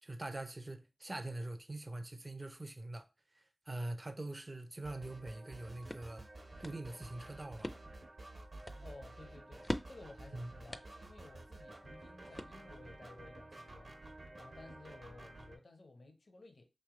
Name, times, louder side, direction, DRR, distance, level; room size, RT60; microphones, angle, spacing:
voice 1, 0.0-3.1 3.3-6.2 6.6-7.7 10.3-10.5, right 2 dB, 35° right, 0.5 m, -43 dB
sound 1, 4.8-15.6, right 2 dB, 65° right, 1.0 m, -52 dB
sound 2, 5.4-13.0, left 1 dB, 20° left, 0.4 m, -47 dB
voice 2, 8.8-16.7, left 2 dB, 75° left, 0.7 m, -56 dB
3.2 x 3.0 x 3.6 m
wide cardioid pair, 60°, 0 cm